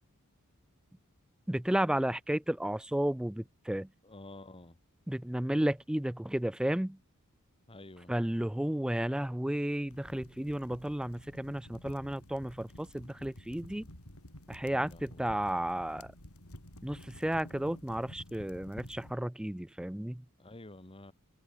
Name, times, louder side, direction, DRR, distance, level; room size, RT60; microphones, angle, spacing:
voice 1, 1.5-3.9 5.1-7.0 8.1-13.9 14.5-16.1 16.8-20.2, right 1 dB, 5° right, 0.3 m, -33 dB
voice 2, 4.0-4.8 7.7-8.1 14.7-15.4 20.4-21.1, left 2 dB, 25° left, 1.6 m, -50 dB
sound 1, 9.9-19.1, left 1 dB, 80° left, 6.7 m, -51 dB
head